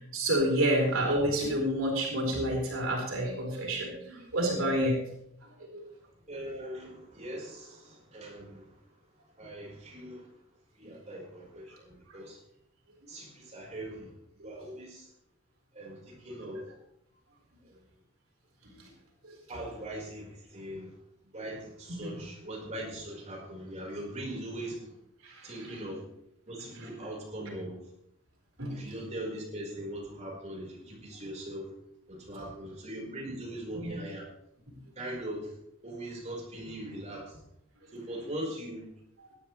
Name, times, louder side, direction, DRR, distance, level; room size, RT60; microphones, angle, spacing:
voice 1, 0.1-5.0 5.7-5.8 22.0-22.2 25.2-25.3 28.6-28.8 33.7-33.9, right 1 dB, 90° right, -1 dB, 4.6 m, -28 dB
voice 2, 6.3-8.7 9.4-10.3 10.7-12.4 13.1-14.1 14.4-15.1 15.7-16.7 17.7-17.8 19.5-20.9 21.3-24.8 25.4-26.0 26.5-27.8 28.7-31.7 32.1-34.3 35.0-35.5 35.8-37.4 37.9-38.9, right 1 dB, 35° right, -2 dB, 4.9 m, -40 dB
18.0 x 12.0 x 3.4 m, 0.77 s
head